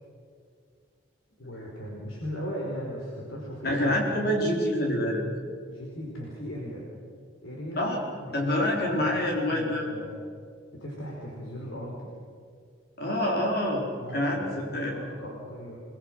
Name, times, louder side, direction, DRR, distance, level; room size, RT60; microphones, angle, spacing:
voice 1, 1.4-4.0 5.7-6.9 7.4-9.0 9.3-10.2 10.8-12.1 14.0-15.8, equal, 85° left, -3 dB, 4.6 m, -38 dB
voice 2, 3.6-5.2 7.8-8.0 8.3-9.8 13.0-13.8 14.1-14.9, left 1 dB, 50° left, -1 dB, 4.2 m, -26 dB
30.0 x 21.0 x 6.3 m, 2.2 s
head